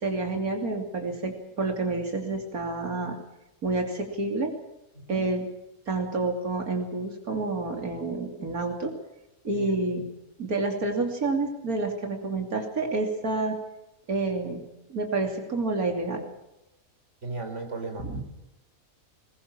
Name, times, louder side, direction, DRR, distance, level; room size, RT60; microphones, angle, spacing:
voice 1, 0.0-3.2 3.6-4.5 5.1-5.5 5.9-8.9 9.4-10.1 10.4-13.6 14.1-14.6 14.9-16.2 18.0-18.2, right 3 dB, 90° right, 3 dB, 3.3 m, -29 dB
voice 2, 17.2-18.1, right 3 dB, 55° right, 5 dB, 4.1 m, -36 dB
22.0 x 20.5 x 7.4 m, 0.92 s
omnidirectional pair, 1.5 m